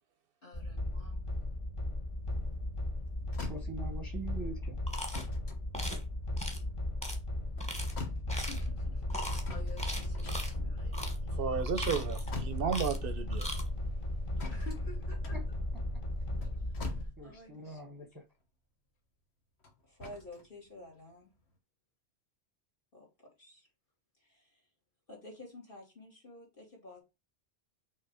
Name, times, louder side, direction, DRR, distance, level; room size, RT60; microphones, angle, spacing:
voice 1, 0.4-1.4 8.3-11.4 14.5-15.4 16.4-16.5 16.9-17.9 19.8-21.3 22.9-23.1 23.4-23.7 24.2-24.7 25.1-27.0, left 2 dB, 55° left, 2.8 m, -51 dB
sound 1, 0.5-17.1, left 1 dB, 30° left, 0.9 m, -36 dB
sound 2, 2.8-2.9 3.2-4.0 5.1-6.7 7.4-8.6 9.4-10.9 11.7-13.0 13.3-13.4 14.4-17.6 19.6-20.4 21.1-21.2, left 3 dB, 75° left, 1.5 m, -45 dB
voice 2, 3.4-4.8 15.3-15.4 17.2-18.2, right 3 dB, 20° right, 0.8 m, -43 dB
sound 3, 4.9-5.3 5.7-6.0 6.4-6.6 7.0-7.2 7.6-7.9 8.3-8.7 9.1-9.4 9.8-10.5 10.9-11.2 11.6-12.3 12.7-13.1 13.3-13.6, equal, 5° left, 1.2 m, -40 dB
voice 3, 11.4-13.5, right 6 dB, 65° right, 0.7 m, -33 dB
5.6 x 3.5 x 4.8 m
omnidirectional pair, 1.1 m